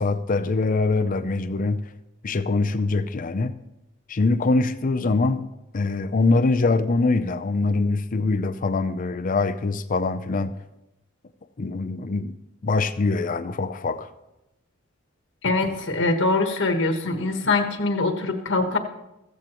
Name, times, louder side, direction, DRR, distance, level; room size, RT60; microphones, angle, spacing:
voice 1, 0.0-1.8 2.2-3.6 4.1-5.5 5.7-10.6 11.6-12.3 12.6-14.1, left 3 dB, 40° left, 0.5 m, -23 dB
voice 2, 15.4-18.8, left 3 dB, 65° left, 1.3 m, -23 dB
15.0 x 14.5 x 3.0 m
head